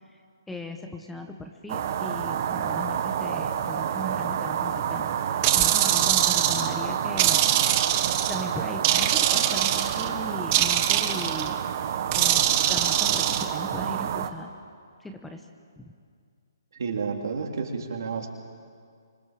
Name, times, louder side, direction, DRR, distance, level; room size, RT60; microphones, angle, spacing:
voice 1, 0.5-5.1 5.5-7.4 8.3-11.6 12.1-14.5 15.0-15.4 15.8-15.9, left 1 dB, 5° left, 5 dB, 1.0 m, -38 dB
sound 1, 1.7-14.3, right 8 dB, 40° right, 1.5 m, -29 dB
sound 2, 5.4-6.7 7.2-8.4 8.8-10.1 10.5-11.5 12.1-13.4, right 13 dB, 25° right, 1.0 m, -23 dB
voice 2, 16.7-18.3, right 5 dB, 65° right, 1 dB, 3.7 m, -30 dB
26.0 x 24.0 x 7.7 m, 2.1 s
hypercardioid pair, 165°, 2 cm